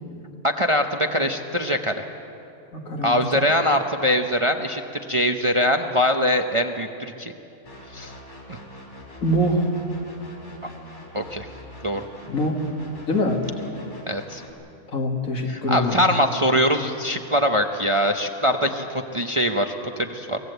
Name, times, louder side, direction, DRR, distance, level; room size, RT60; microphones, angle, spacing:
voice 1, 0.4-2.0 3.0-7.3 7.9-8.1 8.5-8.6 11.1-11.5 11.8-12.0 14.1-14.4 15.5-18.9 19.1-20.4, equal, 25° right, 4 dB, 0.7 m, -22 dB
voice 2, 2.7-3.2 9.2-9.7 12.3-12.6 13.1-13.4 14.9-16.0, left 1 dB, 70° left, 2 dB, 2.5 m, -23 dB
sound 1, 7.7-14.5, left 1 dB, 55° left, 3.7 m, -44 dB
23.5 x 18.5 x 8.1 m, 2.7 s
omnidirectional pair, 1.5 m